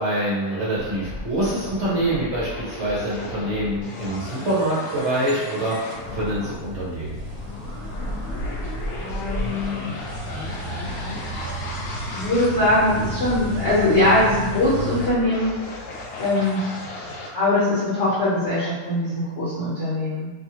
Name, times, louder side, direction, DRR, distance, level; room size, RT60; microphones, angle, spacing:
voice 1, 0.0-7.2, right 1 dB, 55° right, -8 dB, 0.9 m, -25 dB
sound 1, 0.7-17.3, left 1 dB, 70° left, 0.6 m, -35 dB
sound 2, 6.0-15.1, equal, 75° right, 1.0 m, -33 dB
voice 2, 8.9-9.8 12.1-15.5 16.2-16.6 17.3-20.3, left 1 dB, 50° left, -9 dB, 1.0 m, -21 dB
2.7 x 2.4 x 2.8 m, 1.3 s
omnidirectional pair, 1.7 m